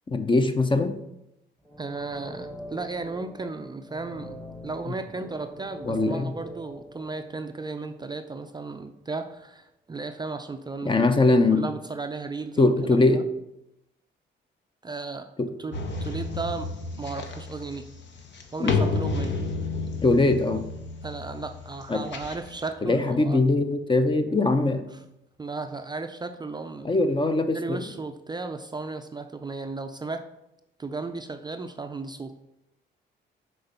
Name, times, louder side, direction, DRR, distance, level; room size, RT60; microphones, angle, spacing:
voice 1, 0.1-0.9 4.9-5.0 5.8-6.3 10.8-11.7 12.6-13.2 15.4-15.5 18.6-18.8 20.0-20.7 21.9-22.0 22.8-24.9 26.8-27.8, left 2 dB, 25° left, 8 dB, 0.7 m, -22 dB
sound 1, 1.6-8.5 8.8-8.9, equal, 5° left, 1.0 m, -43 dB
voice 2, 1.8-4.4 4.6-10.9 11.5-12.7 13.1-13.2 14.8-15.3 15.6-17.9 18.5-19.4 21.0-23.4 25.4-26.9 27.5-30.3 30.8-32.4, right 3 dB, 20° right, 7 dB, 0.4 m, -35 dB
sound 2, 15.7-22.7, left 3 dB, 65° left, 1.1 m, -31 dB
6.5 x 4.4 x 5.6 m, 0.88 s
cardioid pair, 90°, 20 cm